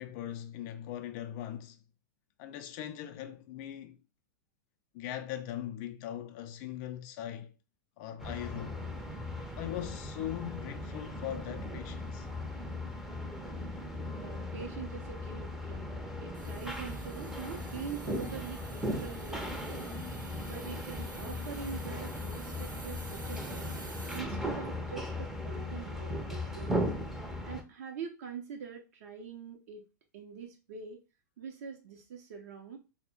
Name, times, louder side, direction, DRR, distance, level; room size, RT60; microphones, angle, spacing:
voice 1, 0.0-1.8 2.4-4.0 4.9-7.5 8.0-8.8 9.6-12.3, left 11 dB, 40° left, 0.4 m, -40 dB
sound 1, 8.2-27.6, left 1 dB, 5° right, 0.6 m, -38 dB
voice 2, 14.2-19.9 20.4-23.7 24.1-26.9 27.4-29.8 30.1-31.0 31.4-32.8, right 6 dB, 55° right, 0.6 m, -44 dB
Hiss, 16.3-24.2, right 3 dB, 80° right, 0.8 m, -50 dB
4.2 x 2.1 x 3.3 m
figure-of-eight pair, 95°, 10 cm